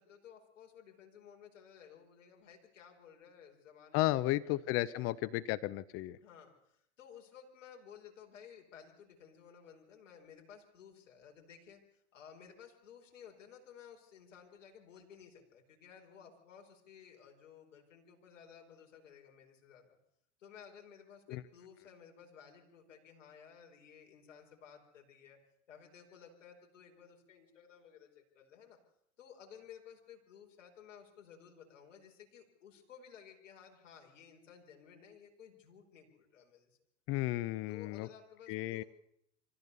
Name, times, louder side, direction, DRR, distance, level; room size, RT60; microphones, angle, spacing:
voice 1, 0.0-5.2 6.2-20.0 20.4-25.4 25.7-28.8 29.2-36.8 37.7-38.9, left 8 dB, 80° left, 2 dB, 5.0 m, -56 dB
voice 2, 3.9-6.2 21.3-21.4 37.1-38.1 38.5-38.8, left 17 dB, 35° left, 17 dB, 0.7 m, -33 dB
25.0 x 15.0 x 6.9 m, 0.75 s
hypercardioid pair, 115°, 37 cm